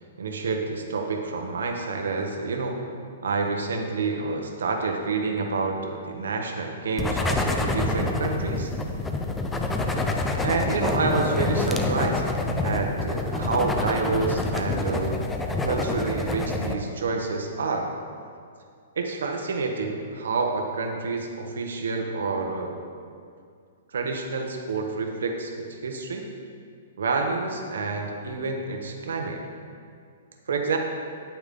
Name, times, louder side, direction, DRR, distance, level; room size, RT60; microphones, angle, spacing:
voice 1, 0.2-2.8 3.2-8.7 10.4-12.2 12.6-15.3 15.6-17.9 19.0-22.8 23.9-26.3 27.0-29.4 30.5-30.8, right 4 dB, 90° right, 3 dB, 1.2 m, -28 dB
sound 1, 7.0-16.7, left 2 dB, 10° left, 0.5 m, -27 dB
9.7 x 8.9 x 3.8 m, 2.2 s
hypercardioid pair, 160°, 0 cm